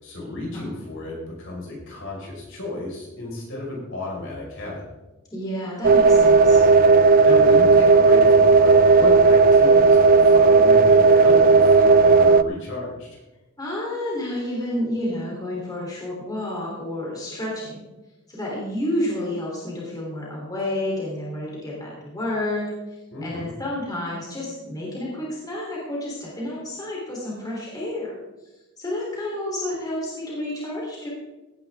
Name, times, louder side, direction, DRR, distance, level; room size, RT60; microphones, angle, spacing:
voice 1, 0.0-4.8 7.2-13.2 23.1-23.5, left 2 dB, 60° left, -3 dB, 5.3 m, -33 dB
voice 2, 5.3-6.6 13.6-17.8 18.3-22.7 23.2-28.1 28.8-31.1, left 1 dB, 15° left, -5 dB, 3.6 m, -30 dB
sound 1, 5.8-12.4, right 4 dB, 40° right, 0.3 m, -14 dB
16.5 x 10.5 x 3.7 m, 1.1 s
head